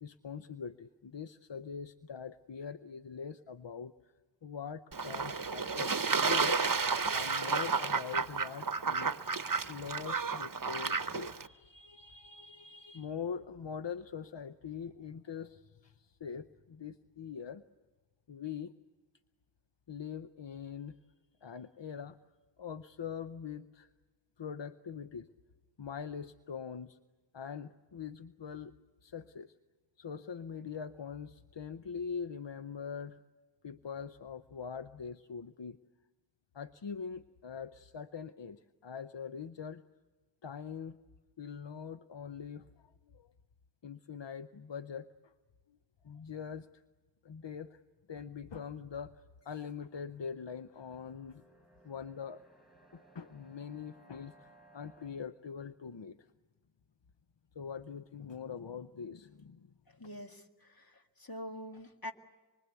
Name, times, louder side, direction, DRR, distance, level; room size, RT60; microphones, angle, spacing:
voice 1, 0.0-4.1 4.4-6.7 7.1-9.2 9.7-17.6 18.3-18.7 19.9-21.0 21.4-22.2 22.6-23.9 24.4-25.3 25.8-27.0 27.3-28.7 29.0-29.5 30.0-33.2 33.6-35.8 36.5-39.8 40.4-41.0 41.4-42.7 43.1-43.3 43.8-45.3 45.7-45.8 46.0-46.8 47.2-47.8 48.1-51.4 51.8-52.4 52.9-56.3 57.5-59.7, left 6 dB, 75° left, 10 dB, 0.8 m, -43 dB
Fowl / Bird / Water, 4.9-11.5, right 5 dB, 50° right, 0.9 m, -32 dB
sound 1, 49.3-55.1, right 2 dB, ahead, 5.4 m, -63 dB
voice 2, 60.0-62.1, equal, 55° left, 4 dB, 2.1 m, -45 dB
26.0 x 23.5 x 8.2 m, 1.3 s
wide cardioid pair, 40°, 44 cm